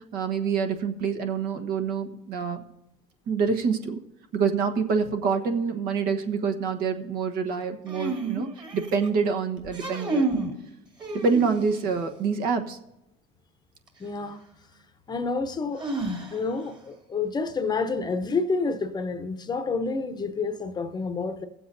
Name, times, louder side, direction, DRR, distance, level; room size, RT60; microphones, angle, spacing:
voice 1, 0.1-2.6 3.3-4.0 4.3-10.2 11.1-12.8, right 5 dB, 60° right, 1.2 m, -26 dB
sound 1, 7.9-9.1 9.6-10.5 11.0-11.9 13.9-14.0 15.8-16.6, right 2 dB, 25° right, 2.2 m, -30 dB
voice 2, 14.0-14.4 15.1-15.8 16.3-21.5, left 4 dB, 25° left, 0.8 m, -29 dB
16.5 x 7.7 x 2.7 m
supercardioid pair, 115°, 18 cm